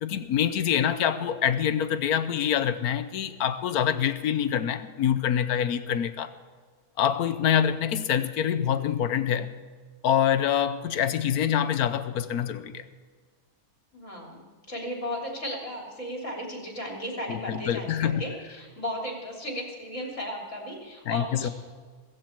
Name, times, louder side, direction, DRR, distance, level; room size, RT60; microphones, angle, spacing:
voice 1, 0.0-6.3 7.0-9.5 10.0-12.8 17.3-18.2 21.1-21.5, left 9 dB, 80° left, 12 dB, 1.3 m, -25 dB
voice 2, 13.9-21.5, left 1 dB, 55° left, 0 dB, 3.6 m, -35 dB
16.0 x 15.5 x 4.5 m, 1.5 s
omnidirectional pair, 1.6 m